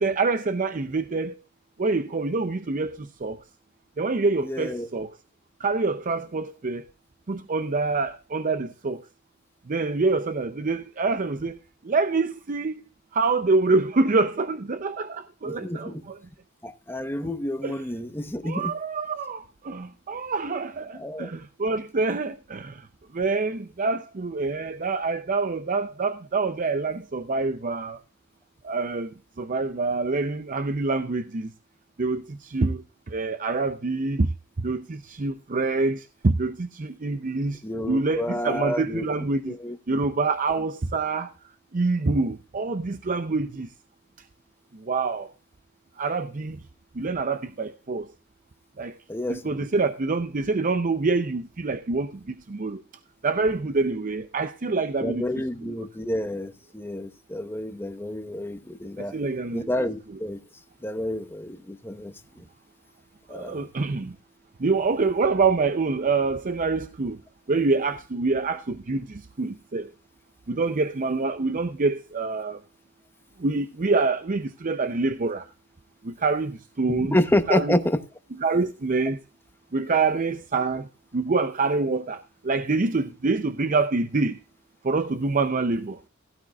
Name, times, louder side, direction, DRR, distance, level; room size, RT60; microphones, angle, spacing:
voice 1, 0.0-1.3 1.8-3.4 4.0-5.1 5.6-6.8 7.3-9.0 9.7-11.6 11.8-12.8 13.1-16.2 17.6-17.9 18.4-22.9 23.1-28.0 28.6-29.1 29.4-31.5 32.0-34.3 34.6-37.6 37.9-39.6 39.9-41.3 41.7-43.7 44.8-45.3 46.0-46.6 47.0-48.1 48.8-49.0 49.3-52.8 53.2-55.2 55.6-55.7 59.0-59.7 63.3-64.2 64.6-67.2 67.5-69.9 70.5-72.6 73.4-75.5 76.0-77.2 77.5-77.8 78.4-79.2 79.7-80.9 81.1-84.4 84.8-86.0, right 3 dB, 40° right, 0.6 m, -26 dB
voice 2, 4.4-4.9 15.4-16.0 16.6-18.7 20.9-21.3 37.6-39.1 39.5-40.0 49.1-49.7 55.0-59.1 59.5-60.4 60.8-62.1 63.3-63.6 76.9-78.0, left 1 dB, 10° left, 0.9 m, -29 dB
16.5 x 12.0 x 2.4 m
head